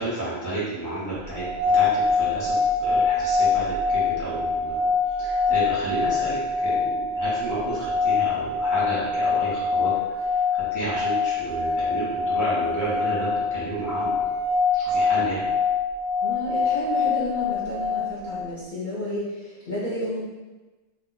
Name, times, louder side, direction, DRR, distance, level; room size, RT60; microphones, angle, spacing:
voice 1, 0.0-1.4 1.7-2.5 2.8-4.8 5.1-9.9 10.2-14.3 14.7-15.5, right 2 dB, 20° right, -9 dB, 0.6 m, -31 dB
sound 1, 1.3-18.5, left 4 dB, 75° right, 0.4 m, -24 dB
voice 2, 16.2-20.2, left 1 dB, 45° left, -8 dB, 0.8 m, -31 dB
2.5 x 2.2 x 3.8 m, 1.2 s
omnidirectional pair, 1.3 m